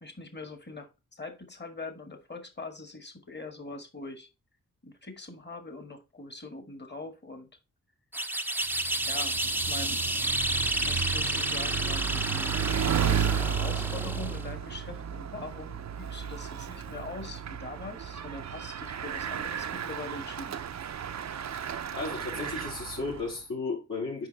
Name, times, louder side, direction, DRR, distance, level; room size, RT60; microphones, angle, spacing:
voice 1, 0.0-4.3 4.8-7.5 9.0-10.0 10.8-12.6 12.9-20.6, left 3 dB, 30° left, 1.7 m, -42 dB
sound 1, 8.1-14.5, right 1 dB, 5° right, 0.6 m, -30 dB
Bicycle, 8.7-23.4, right 8 dB, 55° right, 0.6 m, -33 dB
voice 2, 21.9-24.3, left 3 dB, 65° left, 3.3 m, -34 dB
6.4 x 5.0 x 4.0 m
cardioid pair, 40°, 33 cm